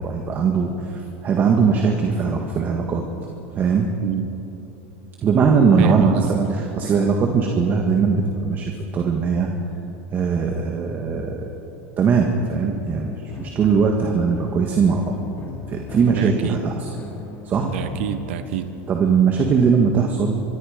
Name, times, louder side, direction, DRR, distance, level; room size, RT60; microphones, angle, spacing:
voice 1, 0.0-3.0 3.5-3.9 5.2-9.5 10.1-11.5 12.0-15.2 15.7-16.9 17.4-17.7 18.9-20.4, right 5 dB, 30° right, 2 dB, 1.8 m, -20 dB
voice 2, 4.0-4.3 5.8-6.5 16.0-16.6 17.6-18.7, right 9 dB, 75° right, 10 dB, 1.4 m, -27 dB
sound 1, 13.0-19.0, left 3 dB, 30° left, 3.6 m, -39 dB
25.5 x 22.5 x 5.3 m, 2.9 s
supercardioid pair, 145°, 6 cm